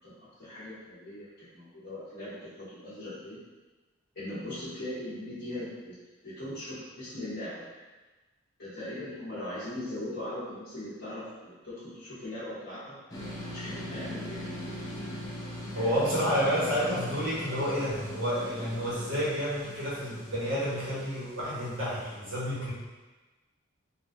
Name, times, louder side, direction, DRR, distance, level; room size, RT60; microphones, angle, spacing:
voice 1, 0.0-3.4 4.1-6.0 6.2-7.6 8.6-12.8 13.5-14.4 15.7-16.1, left 1 dB, 50° left, -14 dB, 1.1 m, -39 dB
sound 1, 13.1-22.1, left 1 dB, 15° left, 0.4 m, -41 dB
voice 2, 15.7-22.7, equal, 70° right, -8 dB, 1.2 m, -30 dB
3.6 x 2.5 x 2.6 m, 1.2 s
head